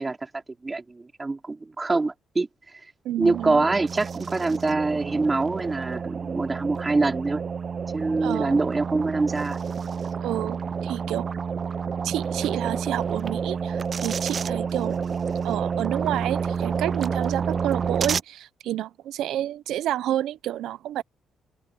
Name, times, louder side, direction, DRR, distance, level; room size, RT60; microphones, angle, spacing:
voice 1, 0.0-2.5 3.2-7.4 7.9-9.6, right 3 dB, 25° right, 3.6 m, -25 dB
voice 2, 3.0-3.6 8.2-8.6 10.2-11.3 12.0-15.0 15.4-21.0, right 12 dB, 80° right, 0.7 m, -29 dB
sound 1, 3.2-18.2, right 6 dB, 45° right, 0.5 m, -29 dB
open air
cardioid pair, 90°, 0 cm